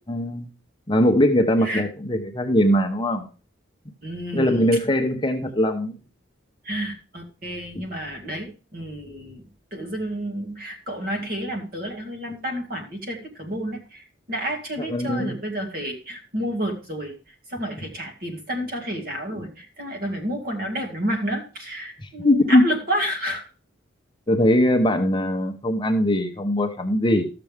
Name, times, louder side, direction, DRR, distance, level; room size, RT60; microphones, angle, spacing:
voice 1, 0.1-0.5 0.9-3.3 4.3-5.9 14.9-15.3 22.2-22.6 24.3-27.3, left 1 dB, 25° left, 5 dB, 0.8 m, -20 dB
voice 2, 4.0-4.8 6.6-9.5 9.7-17.1 17.5-23.4, equal, 50° right, 3 dB, 2.2 m, -30 dB
13.0 x 6.8 x 3.5 m, 0.35 s
head